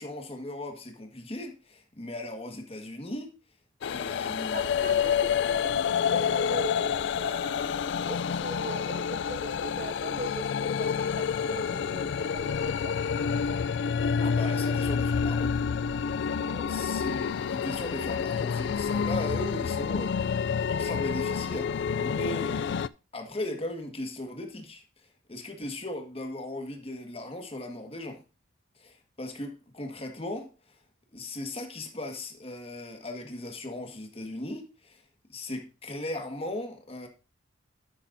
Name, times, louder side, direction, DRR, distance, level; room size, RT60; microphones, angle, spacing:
voice 1, 0.0-3.3 3.9-4.6 14.2-15.6 16.6-22.8 23.1-24.8 25.3-28.2 28.8-30.8 31.1-35.0 35.3-37.1, left 1 dB, 30° left, 1.6 m, -37 dB
sound 1, 3.8-22.9, left 7 dB, 60° left, 0.3 m, -28 dB
voice 2, 4.5-13.0 16.5-16.7, right 3 dB, 45° right, 0.6 m, -40 dB
10.5 x 8.5 x 2.6 m
head